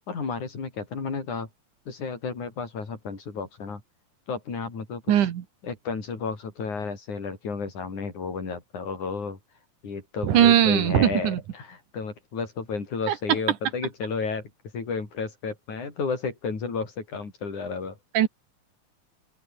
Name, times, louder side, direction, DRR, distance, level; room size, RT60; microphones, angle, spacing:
voice 1, 0.1-1.5 1.9-3.8 4.3-5.3 5.6-9.4 9.8-18.0, left 5 dB, 75° left, 6.4 m, -32 dB
voice 2, 5.1-5.4 10.2-11.4 18.1-18.3, right 11 dB, 85° right, 3.1 m, -19 dB
open air
omnidirectional pair, 3.5 m